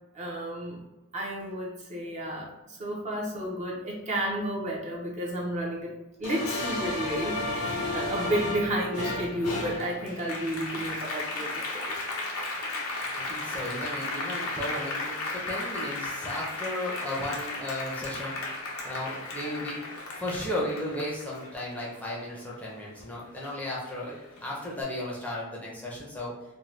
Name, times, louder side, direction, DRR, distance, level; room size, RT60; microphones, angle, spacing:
voice 1, 0.1-0.8 1.1-5.9 6.2-12.0, right 1 dB, 35° right, -3 dB, 0.6 m, -32 dB
Applause, 6.2-23.0 23.4-24.6, left 2 dB, 90° left, 0.6 m, -34 dB
voice 2, 13.1-18.4 18.8-19.8 20.1-24.2 24.4-26.3, left 1 dB, 5° left, -5 dB, 0.6 m, -35 dB
2.6 x 2.1 x 3.1 m, 0.97 s
head